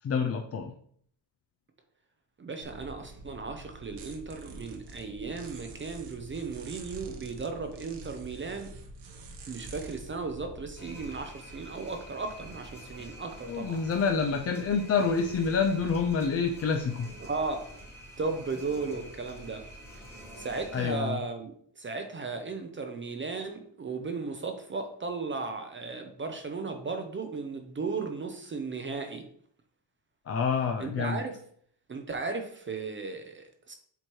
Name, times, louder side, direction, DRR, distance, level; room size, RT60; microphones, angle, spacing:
voice 1, 0.0-0.7 13.4-17.1 20.7-21.2 30.3-31.2, left 5 dB, 35° left, 4 dB, 0.4 m, -27 dB
voice 2, 2.4-8.7 9.5-13.8 17.2-17.8 18.2-19.6 20.4-29.3 30.8-31.4 31.9-33.7, right 4 dB, 25° right, 6 dB, 0.5 m, -36 dB
sound 1, 2.6-11.2, right 2 dB, 65° right, 1.1 m, -46 dB
sound 2, 10.8-20.9, right 1 dB, 5° left, 1.1 m, -47 dB
7.9 x 4.4 x 3.1 m, 0.62 s
wide cardioid pair, 175°, 45 cm